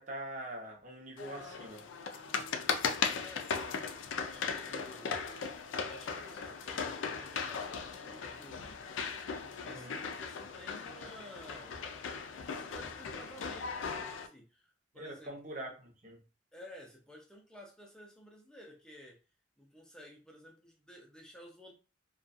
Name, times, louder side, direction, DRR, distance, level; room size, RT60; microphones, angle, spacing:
voice 1, 0.0-1.8 9.6-10.0 14.9-16.2, right 1 dB, 40° right, 0.8 m, -44 dB
sound 1, 1.2-14.3, left 5 dB, 85° left, 0.4 m, -38 dB
voice 2, 3.0-5.2 5.7-11.8 12.3-15.3 16.5-19.2 19.6-21.7, equal, 5° left, 0.5 m, -54 dB
2.4 x 2.3 x 2.5 m
head